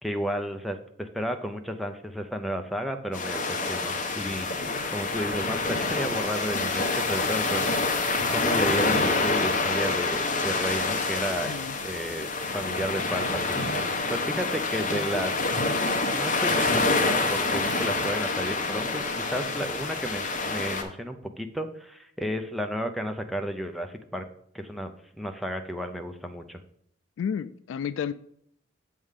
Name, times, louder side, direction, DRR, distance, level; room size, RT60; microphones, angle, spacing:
voice 1, 0.0-11.5 11.8-15.4 16.1-24.2 24.5-24.9 25.2-26.6, equal, ahead, 0.5 m, -33 dB
sound 1, 3.1-20.8, left 3 dB, 40° left, 1.0 m, -27 dB
voice 2, 27.2-28.1, left 7 dB, 80° left, 0.3 m, -31 dB
7.7 x 3.7 x 6.4 m
head